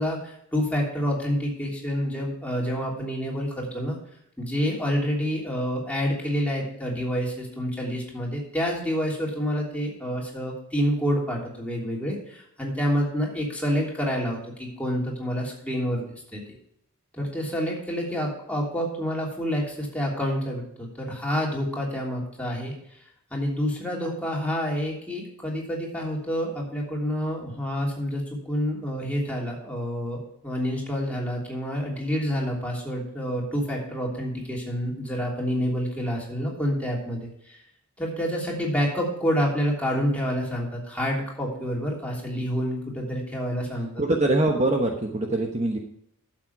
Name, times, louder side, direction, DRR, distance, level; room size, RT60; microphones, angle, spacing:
voice 1, 0.0-4.0 4.4-16.4 17.1-22.7 23.3-37.6 38.0-44.0, equal, 5° left, -3 dB, 3.1 m, -28 dB
voice 2, 44.0-45.8, right 2 dB, 30° right, 2 dB, 1.1 m, -23 dB
12.0 x 7.5 x 4.7 m, 0.73 s
head